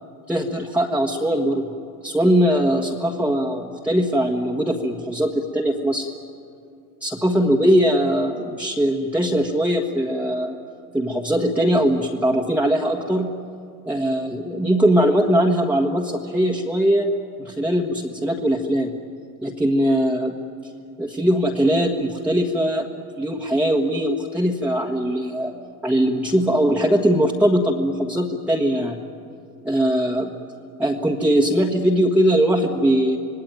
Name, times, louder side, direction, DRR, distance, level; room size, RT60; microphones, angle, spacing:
voice 1, 0.3-1.7 2.0-6.1 7.0-10.5 10.9-13.3 13.9-17.1 17.4-18.9 19.4-20.4 21.0-22.9 23.2-25.5 25.8-29.0 29.6-30.3 30.8-33.2, equal, 5° right, -2 dB, 1.6 m, -20 dB
26.5 x 18.5 x 9.3 m, 2.4 s
hypercardioid pair, 100°, 45 cm